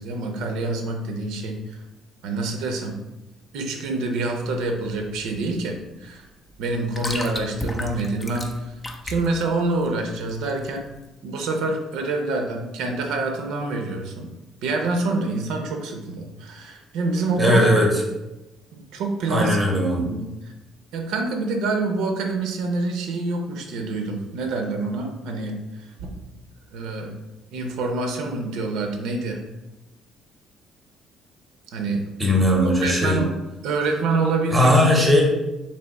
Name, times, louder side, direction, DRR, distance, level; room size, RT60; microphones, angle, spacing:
voice 1, 0.0-1.8 2.2-3.0 3.5-6.3 6.6-8.7 9.0-10.9 11.2-14.3 14.6-17.7 18.7-19.6 20.0-20.5 20.9-26.1 26.7-27.1 27.5-29.4 31.7-32.0 32.6-33.3 33.6-34.7, right 3 dB, 85° right, 3 dB, 0.6 m, -26 dB
sound 1, 5.1-11.1, left 1 dB, 15° left, 0.4 m, -35 dB
voice 2, 17.4-17.9 19.3-20.1 32.2-33.2 34.5-35.2, left 1 dB, 10° right, -1 dB, 0.7 m, -18 dB
3.4 x 3.0 x 4.0 m, 1.0 s
cardioid pair, 170°, 0 cm